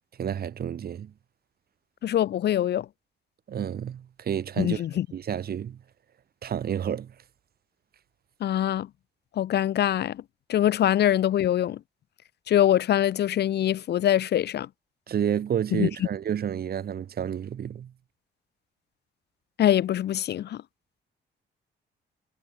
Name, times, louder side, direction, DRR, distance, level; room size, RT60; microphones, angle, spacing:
voice 1, 0.2-1.1 3.5-4.8 5.1-5.8 6.4-7.1 15.1-17.9, right 9 dB, 50° right, 1.0 m, -30 dB
voice 2, 2.0-2.9 4.6-5.1 8.4-8.9 9.4-10.2 10.5-11.8 12.5-14.7 15.8-15.9 19.6-20.6, left 11 dB, 55° left, 0.6 m, -23 dB
cardioid pair, 90°, 20 cm